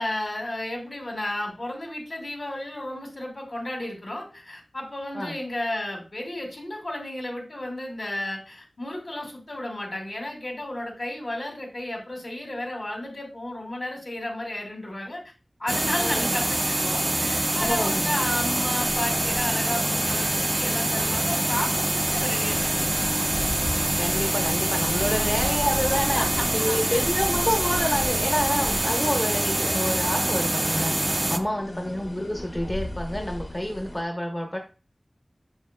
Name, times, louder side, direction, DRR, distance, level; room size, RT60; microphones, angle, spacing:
voice 1, 0.0-15.2 15.6-23.1 25.1-25.5 25.8-25.9 26.1-27.1 31.6-31.9, left 1 dB, 65° left, 1 dB, 2.4 m, -33 dB
sound 1, 15.7-31.4, right 1 dB, 35° right, 0.5 m, -25 dB
voice 2, 16.0-16.5 17.6-18.2 24.0-34.6, left 1 dB, 25° left, 2 dB, 0.9 m, -28 dB
sound 2, 17.6-34.0, left 1 dB, 45° left, 2.2 m, -38 dB
7.0 x 6.1 x 2.2 m, 0.33 s
wide cardioid pair, 60°, 0 cm